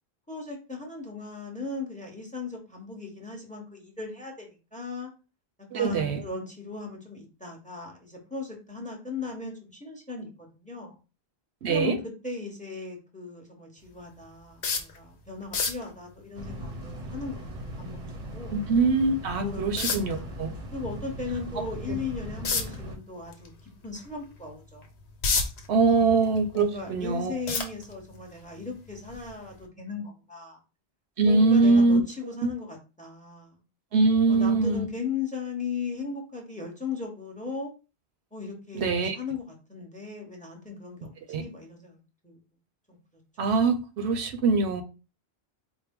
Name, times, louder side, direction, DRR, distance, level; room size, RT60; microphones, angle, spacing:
voice 1, 0.3-5.1 5.7-11.0 11.7-12.0 12.2-17.5 17.8-18.0 18.3-18.6 19.4-20.3 20.7-24.8 25.9-26.2 26.5-30.6 31.2-33.6 34.3-37.7 38.3-42.0 42.2-42.4 42.9-43.2, left 4 dB, 10° left, 0.8 m, -37 dB
voice 2, 5.7-6.2 11.6-12.0 18.5-20.5 25.7-27.3 31.2-32.0 32.4-32.5 33.9-34.8 38.7-39.2 41.3-41.4 43.4-44.8, right 3 dB, 85° right, 0.9 m, -23 dB
sound 1, 14.6-15.0 15.4-15.9 18.6-18.7 19.8-20.2 22.4-22.8 23.3-23.5 24.0-24.1 24.8-25.7 26.1-26.8 27.5-28.2 29.1-29.3 29.6-29.7, left 4 dB, 80° left, 1.0 m, -27 dB
sound 2, 16.3-23.0, right 1 dB, 45° right, 0.7 m, -39 dB
4.4 x 2.1 x 3.4 m
omnidirectional pair, 1.1 m